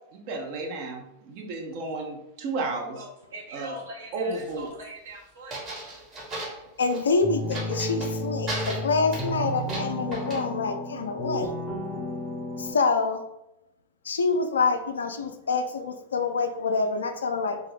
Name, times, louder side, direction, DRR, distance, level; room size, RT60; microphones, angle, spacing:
voice 1, 0.1-3.0 3.5-3.8 4.1-4.7, right 3 dB, 45° right, 1 dB, 0.6 m, -33 dB
voice 2, 2.9-5.6, right 2 dB, 65° right, -2 dB, 0.9 m, -42 dB
sound 1, 4.3-4.7 5.5-7.1 7.5-8.2 8.5-10.4, right 1 dB, 30° right, 1.0 m, -36 dB
voice 3, 6.8-11.6 12.6-13.2 14.1-17.6, left 4 dB, 70° left, 7 dB, 0.3 m, -26 dB
sound 2, 7.2-12.7, equal, 15° left, 0.6 m, -32 dB
2.6 x 2.3 x 3.3 m, 0.86 s
figure-of-eight pair, 90°, 0 cm